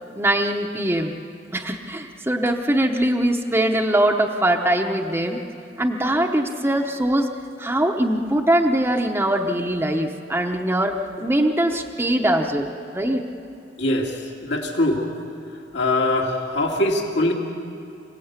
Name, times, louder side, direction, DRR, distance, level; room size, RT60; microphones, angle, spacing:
voice 1, 0.1-1.2 1.5-5.4 5.8-7.3 7.6-13.3, right 1 dB, 15° right, 2 dB, 0.9 m, -22 dB
voice 2, 13.8-15.1 15.7-17.3, left 1 dB, 65° left, 0 dB, 2.4 m, -22 dB
26.5 x 17.0 x 8.2 m, 2.6 s
head